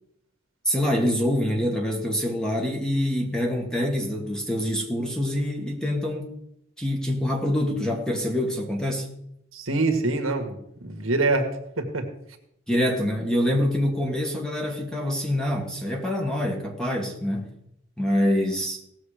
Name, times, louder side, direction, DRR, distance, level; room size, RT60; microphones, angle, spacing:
voice 1, 0.7-6.3 6.8-9.1 12.7-17.5 18.0-18.8, left 1 dB, 5° left, 1.6 m, -25 dB
voice 2, 9.5-12.1, right 2 dB, 85° right, 1.7 m, -25 dB
17.5 x 7.0 x 5.0 m
head